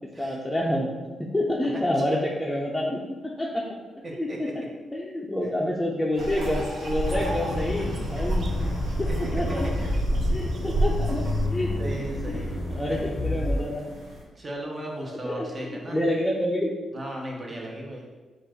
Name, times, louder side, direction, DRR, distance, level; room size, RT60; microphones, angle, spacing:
voice 1, 0.2-0.9 1.2-3.0 3.4-3.6 4.1-4.5 4.9-8.5 9.0-9.7 10.3-13.9 15.2-16.7 17.5-17.7, left 1 dB, 10° left, -4 dB, 0.7 m, -28 dB
voice 2, 4.0-4.5 9.1-9.2 11.8-12.6 12.9-13.0 14.3-16.0 16.9-18.1, right 1 dB, 35° right, -1 dB, 1.1 m, -36 dB
sound 1, 6.1-14.2, equal, 90° right, 1.2 m, -40 dB
sound 2, 6.2-11.5, right 2 dB, 60° right, 0.4 m, -30 dB
Accelerating revving vroom, 7.0-13.6, left 1 dB, 60° left, 0.6 m, -29 dB
4.4 x 2.5 x 4.5 m, 1.3 s
supercardioid pair, 60°, 0 cm